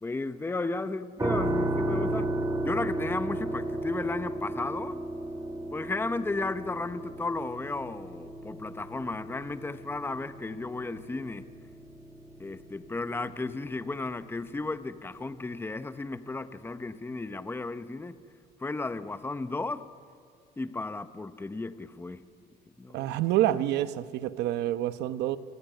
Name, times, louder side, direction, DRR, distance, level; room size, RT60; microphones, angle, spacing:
voice 1, 0.0-2.3 2.6-5.0 5.7-11.5 12.4-18.2 18.6-19.9 20.6-22.2 22.8-23.1, left 3 dB, 15° left, 1.0 m, -34 dB
sound 1, 1.2-14.1, right 1 dB, 20° right, 2.5 m, -34 dB
voice 2, 22.9-25.4, right 13 dB, 85° right, 1.1 m, -27 dB
29.0 x 19.5 x 9.2 m
cardioid pair, 110°, 17 cm